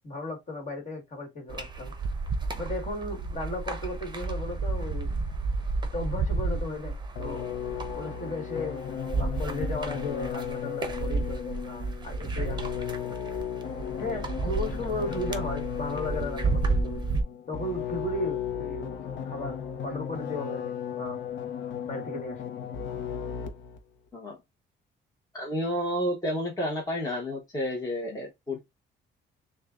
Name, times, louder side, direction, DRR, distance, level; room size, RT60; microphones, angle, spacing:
voice 1, 0.0-1.9 2.5-5.1 5.9-7.6 8.0-8.8 9.2-13.1 14.0-17.0 17.5-19.0 19.2-21.2 21.8-22.5, left 2 dB, 40° left, 1.8 m, -35 dB
sound 1, 1.5-17.2, right 3 dB, 25° right, 0.8 m, -32 dB
sound 2, 7.2-23.8, left 8 dB, 70° left, 0.7 m, -35 dB
voice 2, 25.3-28.6, equal, 20° left, 1.1 m, -30 dB
6.4 x 2.3 x 2.5 m
cardioid pair, 105°, 20 cm